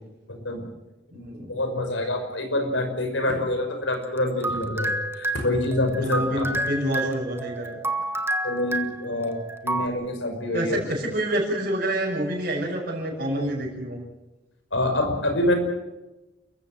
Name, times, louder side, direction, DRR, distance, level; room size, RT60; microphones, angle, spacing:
voice 1, 0.3-0.7 1.1-6.5 8.4-10.8 14.7-15.6, left 1 dB, 85° left, 6 dB, 5.8 m, -26 dB
voice 2, 1.1-1.6 6.0-7.9 10.5-14.0, right 1 dB, 50° right, -4 dB, 6.4 m, -28 dB
sound 1, 4.0-9.9, right 1 dB, 15° right, 1.4 m, -30 dB
29.5 x 15.0 x 7.7 m, 1.0 s
head